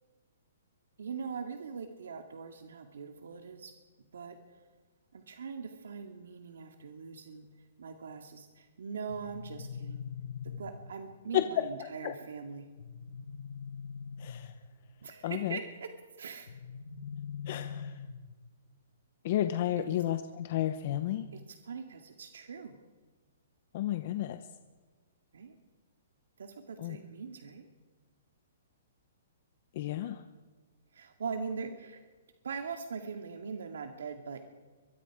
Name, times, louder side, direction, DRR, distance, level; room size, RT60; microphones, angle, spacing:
voice 1, 1.0-3.7 4.1-4.4 5.1-7.5 7.8-10.0 10.4-12.7 15.0-15.9 16.2-16.5 19.8-19.9 21.3-22.8 25.3-25.6 26.4-27.7 30.9-32.0 32.4-34.4, right 5 dB, 80° right, 4 dB, 2.2 m, -41 dB
sound 1, 9.1-11.1 12.8-14.8 16.5-18.5, left 6 dB, 65° left, 1.3 m, -42 dB
voice 2, 11.3-11.7 12.0-12.1 14.2-14.5 15.2-15.6 17.5-17.9 19.2-21.3 23.7-24.4 26.8-27.0 29.8-30.2, left 12 dB, 35° left, 9 dB, 0.8 m, -31 dB
23.5 x 23.0 x 4.9 m, 1.4 s
hypercardioid pair, 175°, 0 cm